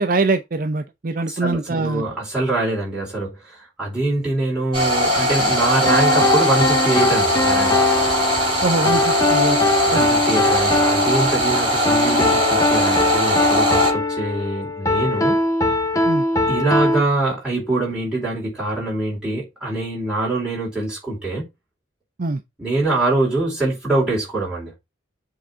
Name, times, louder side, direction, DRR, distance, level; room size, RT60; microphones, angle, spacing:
voice 1, 0.0-2.0 8.6-9.6 9.9-10.0 16.0-16.2 22.2-22.4, right 3 dB, 45° right, 0.5 m, -23 dB
voice 2, 1.3-7.8 9.9-15.4 16.5-21.4 22.6-24.7, right 2 dB, 5° right, 4.7 m, -24 dB
sound 1, 4.7-13.9, left 1 dB, 25° right, 4.9 m, -19 dB
sound 2, 5.8-17.0, left 2 dB, 15° left, 0.6 m, -21 dB
7.7 x 3.6 x 5.5 m
head